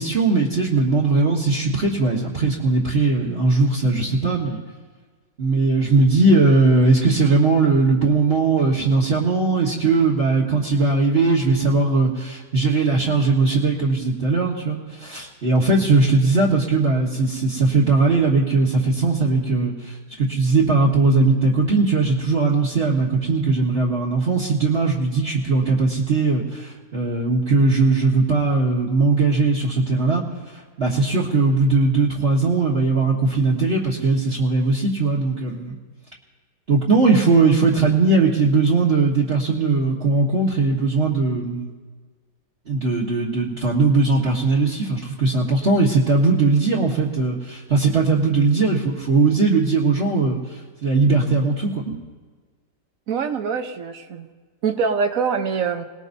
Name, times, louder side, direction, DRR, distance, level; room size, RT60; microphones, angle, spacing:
voice 1, 0.0-4.6 5.4-30.2 30.5-35.8 36.7-41.7 42.7-52.0, right 3 dB, 35° right, -6 dB, 1.7 m, -19 dB
voice 2, 53.1-54.3 54.6-55.8, right 5 dB, 55° right, 7 dB, 1.2 m, -24 dB
27.5 x 19.5 x 2.7 m, 1.4 s
omnidirectional pair, 1.8 m